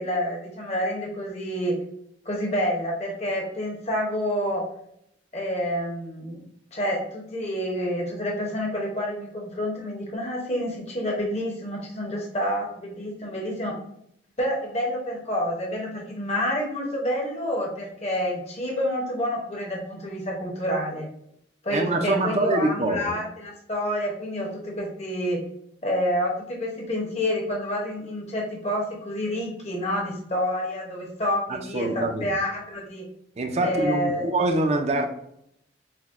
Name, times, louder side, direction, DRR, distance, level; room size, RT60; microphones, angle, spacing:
voice 1, 0.0-1.8 2.2-4.6 5.3-6.4 6.7-13.7 14.4-21.1 21.6-25.4 25.8-33.0 33.6-34.3, equal, 35° left, -1 dB, 0.8 m, -28 dB
voice 2, 21.7-23.2 31.7-32.3 33.4-35.0, right 2 dB, 35° right, 5 dB, 0.4 m, -24 dB
5.8 x 2.2 x 2.4 m, 0.75 s
head